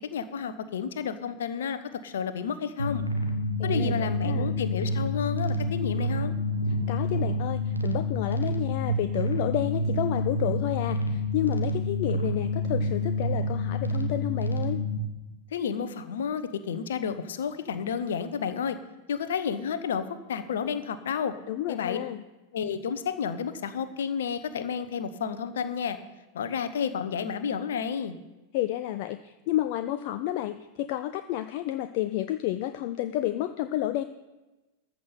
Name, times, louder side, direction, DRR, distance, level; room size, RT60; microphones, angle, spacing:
voice 1, 0.0-3.0 3.6-6.3 15.5-18.8 19.1-20.0 20.3-21.3 21.7-22.0 22.5-26.0 26.3-28.2, left 7 dB, 60° left, 12 dB, 1.0 m, -31 dB
sound 1, 2.8-15.0, left 1 dB, 90° right, 1.3 m, -28 dB
voice 2, 3.6-4.5 6.9-14.8 21.5-22.2 28.5-34.0, left 13 dB, 45° left, 10 dB, 0.5 m, -30 dB
14.0 x 6.0 x 7.0 m, 1.1 s
figure-of-eight pair, 90°, 0 cm